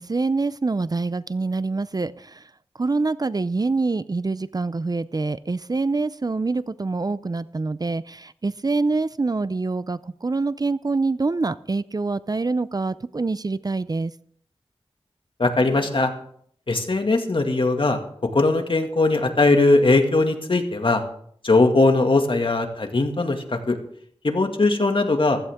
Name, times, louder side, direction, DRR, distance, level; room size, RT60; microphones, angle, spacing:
voice 1, 0.0-2.4 2.8-14.1, right 3 dB, 40° right, 16 dB, 0.5 m, -25 dB
voice 2, 15.4-16.1 16.7-18.0 18.3-21.0 21.4-23.8 24.2-25.4, left 2 dB, 55° left, 4 dB, 2.2 m, -20 dB
16.0 x 14.5 x 3.7 m, 0.62 s
wide cardioid pair, 55°, 10 cm